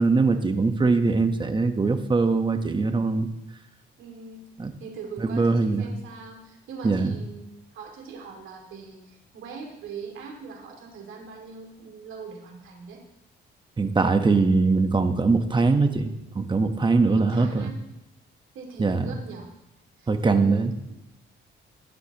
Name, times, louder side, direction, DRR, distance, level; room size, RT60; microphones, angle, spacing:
voice 1, 0.0-3.3 4.6-4.7 5.2-5.9 6.8-7.2 13.8-17.7 18.8-19.1 20.1-20.7, right 3 dB, 25° right, 7 dB, 1.2 m, -22 dB
voice 2, 4.0-4.4 4.8-13.0 17.0-17.8 18.5-19.5 20.0-20.9, right 5 dB, 80° right, 1 dB, 2.4 m, -41 dB
15.5 x 12.0 x 3.0 m, 0.87 s
cardioid pair, 90°, 20 cm